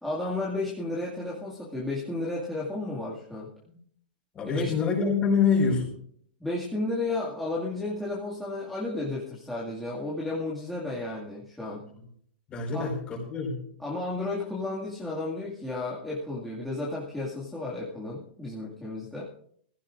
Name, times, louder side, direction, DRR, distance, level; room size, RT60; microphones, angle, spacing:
voice 1, 0.0-3.5 4.5-4.9 6.4-11.9 12.7-12.9 13.8-19.2, left 2 dB, 5° left, -7 dB, 2.1 m, -33 dB
voice 2, 4.3-5.9 12.5-13.6, left 5 dB, 20° left, 0 dB, 4.9 m, -25 dB
19.5 x 16.0 x 2.5 m, 0.64 s
hypercardioid pair, 150°, 5 cm